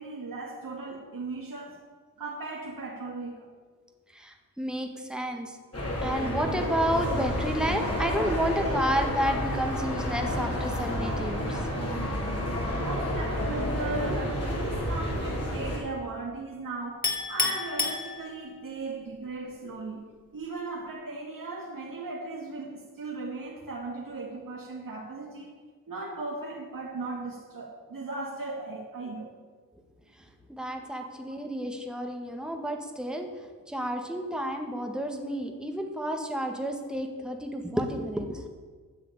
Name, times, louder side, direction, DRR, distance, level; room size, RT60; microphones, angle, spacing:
voice 1, 0.0-1.8 2.2-3.5 12.8-20.0 20.3-25.5 25.9-29.3 31.0-31.1, right 3 dB, 70° right, -3 dB, 2.3 m, -37 dB
voice 2, 4.1-5.6 6.0-11.6 14.1-14.2 30.5-33.3 33.7-38.5, equal, ahead, 3 dB, 1.7 m, -31 dB
sound 1, 5.7-15.8, equal, 45° left, 3.7 m, -30 dB
Chink clink, 17.0-18.7, left 3 dB, 25° left, 2.9 m, -30 dB
10.5 x 6.7 x 8.9 m, 1.5 s
cardioid pair, 55°, 35 cm